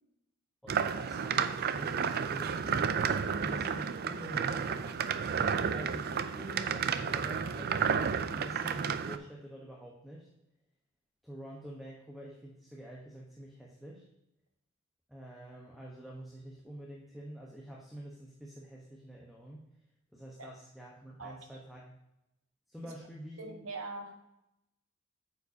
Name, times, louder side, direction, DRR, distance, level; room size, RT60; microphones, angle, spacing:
voice 1, 0.6-3.0 3.3-5.2 5.7-10.3 11.2-14.1 15.1-19.6 20.1-21.9 22.7-23.7, right 1 dB, ahead, -3 dB, 1.1 m, -47 dB
sound 1, 0.7-9.2, right 6 dB, 50° right, 0.4 m, -31 dB
voice 2, 23.4-24.1, right 3 dB, 80° right, 3 dB, 1.4 m, -41 dB
8.7 x 7.2 x 2.8 m, 0.86 s
head